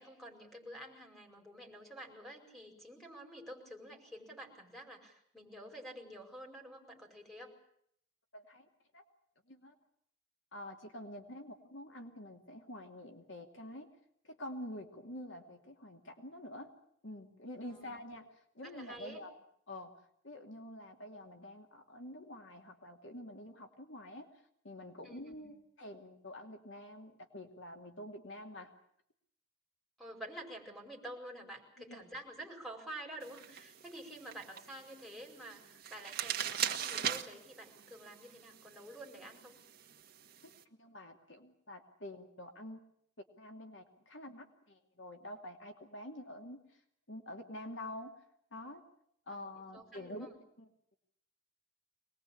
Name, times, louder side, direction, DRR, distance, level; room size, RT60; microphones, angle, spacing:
voice 1, 0.0-7.6 17.7-17.9 18.6-19.2 25.0-25.5 30.0-39.5 49.3-50.4, right 1 dB, ahead, 0 dB, 5.2 m, -49 dB
voice 2, 8.3-8.7 8.9-9.0 9.5-9.8 10.5-13.9 14.2-16.7 17.0-19.4 19.7-19.9 20.2-28.7 31.9-32.0 40.4-42.8 43.4-46.8 47.1-48.2 48.5-48.8 49.3-50.3 50.6-50.7, left 1 dB, 70° left, 4 dB, 2.6 m, -47 dB
sound 1, 33.2-40.6, right 9 dB, 50° right, 1.7 m, -41 dB
23.5 x 20.5 x 8.6 m, 0.69 s
head